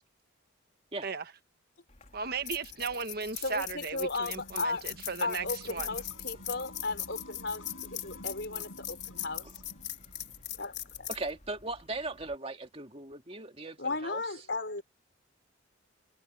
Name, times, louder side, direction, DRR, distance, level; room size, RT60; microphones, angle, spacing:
sound 1, 1.9-12.4, left 10 dB, 35° left, 3.8 m, -41 dB
voice 1, 2.1-6.0, right 5 dB, 50° right, 1.3 m, -36 dB
voice 2, 3.4-4.9 5.2-9.5 10.6-11.1 13.8-14.8, left 3 dB, 55° left, 5.2 m, -35 dB
sound 2, 4.1-10.4, left 1 dB, 90° left, 5.8 m, -52 dB
voice 3, 11.1-14.2, right 2 dB, 30° right, 2.1 m, -38 dB
head